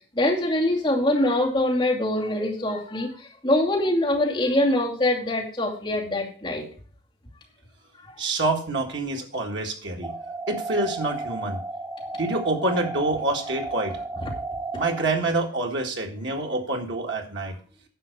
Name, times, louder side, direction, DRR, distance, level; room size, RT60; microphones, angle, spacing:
voice 1, 0.1-3.2 3.4-6.6 14.2-14.3, left 1 dB, 25° left, -3 dB, 2.6 m, -23 dB
voice 2, 8.2-10.1 10.5-11.6 12.1-14.0 14.8-17.6, right 2 dB, 80° right, 2 dB, 1.9 m, -27 dB
sound 1, 10.0-15.0, right 3 dB, 15° right, 0.9 m, -33 dB
10.0 x 5.7 x 6.6 m, 0.43 s
head